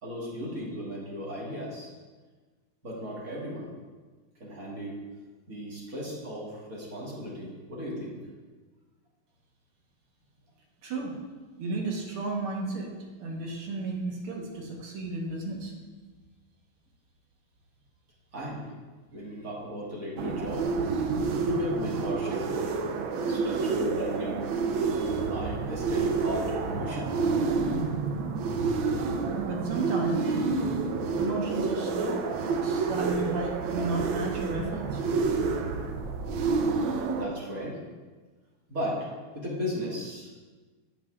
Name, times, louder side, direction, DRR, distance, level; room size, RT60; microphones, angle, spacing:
voice 1, 0.0-1.9 2.8-3.7 4.4-5.0 5.5-8.2 18.3-18.6 19.1-20.7 21.5-22.5 23.3-24.4 25.3-27.1 37.1-37.8 38.7-39.1 39.3-40.3, equal, 45° right, -5 dB, 1.8 m, -35 dB
voice 2, 10.8-11.2 11.6-12.9 13.2-15.7 23.3-23.6 24.9-25.2 29.4-30.6 31.1-32.3 32.5-35.0, right 3 dB, 90° right, 0 dB, 2.1 m, -33 dB
sound 1, 20.2-37.3, right 4 dB, 75° right, 1.4 m, -29 dB
8.6 x 8.2 x 2.4 m, 1.4 s
omnidirectional pair, 2.3 m